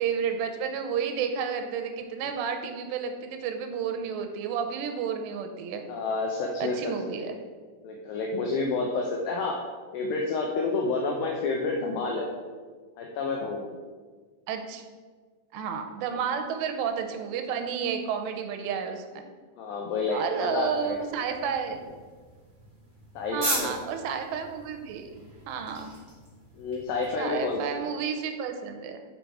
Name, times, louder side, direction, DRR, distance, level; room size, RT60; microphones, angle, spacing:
voice 1, 0.0-5.8 6.6-7.4 14.5-14.8 15.5-19.2 20.1-21.9 23.3-25.9 27.2-29.0, right 7 dB, 85° right, 5 dB, 2.8 m, -31 dB
voice 2, 5.9-7.4 7.8-9.6 9.9-12.3 13.0-13.7 19.6-21.0 23.2-23.7 26.6-27.9, left 3 dB, 85° left, 0 dB, 2.0 m, -29 dB
sound 1, 20.6-27.6, right 1 dB, 20° right, 1.5 m, -39 dB
6.6 x 5.3 x 4.7 m, 1.5 s
omnidirectional pair, 4.9 m